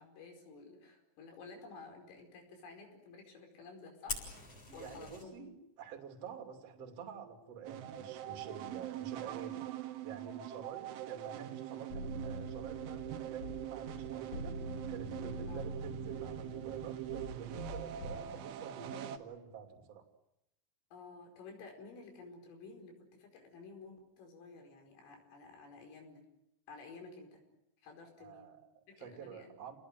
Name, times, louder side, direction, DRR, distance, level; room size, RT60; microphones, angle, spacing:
voice 1, 0.0-4.2 4.7-5.4 15.5-15.6 20.9-26.2 26.7-27.4 27.8-28.5 28.9-29.7, left 4 dB, 80° left, 2 dB, 7.5 m, -52 dB
Fire, 4.1-5.2, left 3 dB, 30° left, 7.6 m, -42 dB
voice 2, 4.7-5.5 5.8-14.6 14.9-20.0 28.2-29.8, right 6 dB, 35° right, 4 dB, 3.2 m, -49 dB
sound 1, 7.7-19.2, right 12 dB, 75° right, 3.8 m, -43 dB
sound 2, 11.9-18.2, equal, 45° left, 3.7 m, -45 dB
30.0 x 19.5 x 9.2 m, 0.86 s
omnidirectional pair, 5.8 m